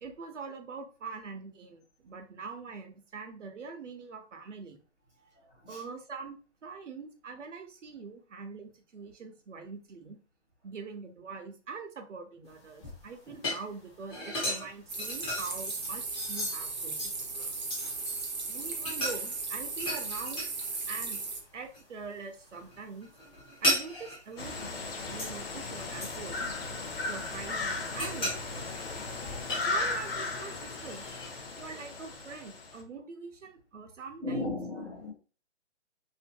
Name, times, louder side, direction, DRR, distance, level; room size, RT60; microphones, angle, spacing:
voice 1, 0.0-4.8 5.7-10.2 10.6-17.1 18.4-20.4 20.9-21.2 21.5-23.1 23.6-24.8 25.1-26.5 27.0-28.8 29.6-31.0 31.6-34.5, right 4 dB, 80° right, 0.7 m, -43 dB
voice 2, 5.3-5.8 17.4-17.5 29.1-29.4 34.2-35.1, left 2 dB, 10° right, 0.7 m, -37 dB
sound 1, 12.5-18.4 18.8-20.8 21.0-21.8 22.2-25.5 26.0-27.1 27.6-30.3 30.7-31.4, equal, 30° left, 1.2 m, -36 dB
sound 2, 14.9-21.4, right 4 dB, 40° right, 0.5 m, -36 dB
sound 3, 24.4-32.8, left 3 dB, 55° left, 0.6 m, -36 dB
2.6 x 2.5 x 2.2 m
hypercardioid pair, 155°, 36 cm